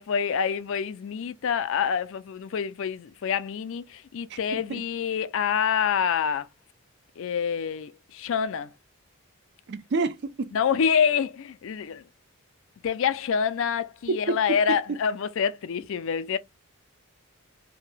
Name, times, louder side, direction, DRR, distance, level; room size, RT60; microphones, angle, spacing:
voice 1, 0.0-6.5 7.2-8.7 10.5-12.0 12.8-16.4, left 7 dB, 60° left, 0.4 m, -27 dB
voice 2, 4.3-4.8 9.7-10.5 14.1-14.6, right 3 dB, 50° right, 0.4 m, -29 dB
2.7 x 2.1 x 3.1 m
head